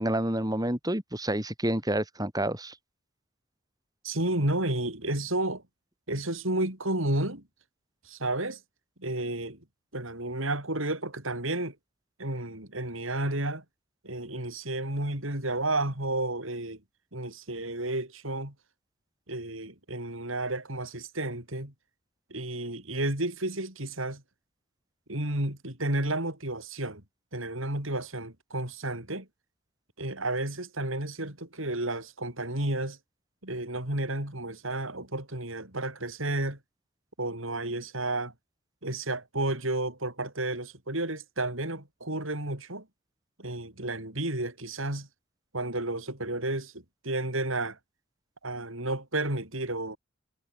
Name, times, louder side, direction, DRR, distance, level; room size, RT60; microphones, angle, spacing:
voice 1, 0.0-2.7, right 1 dB, 20° right, 6.6 m, -29 dB
voice 2, 4.0-5.6 6.1-7.4 8.0-8.6 9.0-9.6 9.9-11.7 12.2-13.6 14.0-16.8 17.1-18.5 19.3-21.7 22.3-24.2 25.1-27.0 27.3-29.3 30.0-33.0 33.4-36.6 37.2-38.3 38.8-42.8 43.4-45.1 45.5-46.7 47.0-47.8 48.4-50.0, right 2 dB, 75° right, 6.7 m, -31 dB
head